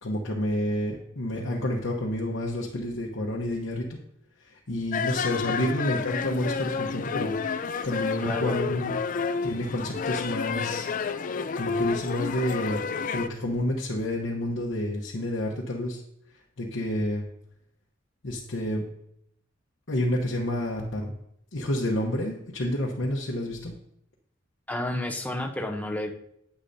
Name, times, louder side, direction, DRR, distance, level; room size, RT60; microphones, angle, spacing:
voice 1, 0.0-4.0 4.4-7.3 7.8-8.9 9.4-10.9 11.6-12.8 13.1-16.0 16.3-17.2 18.2-18.8 19.9-21.1 21.5-23.7, left 1 dB, 70° left, -3 dB, 1.0 m, -29 dB
sound 1, 4.9-13.3, left 5 dB, 40° left, 0.3 m, -30 dB
voice 2, 8.2-8.6 24.7-26.1, left 1 dB, 10° left, 4 dB, 0.7 m, -31 dB
10.0 x 8.1 x 2.7 m, 0.74 s
head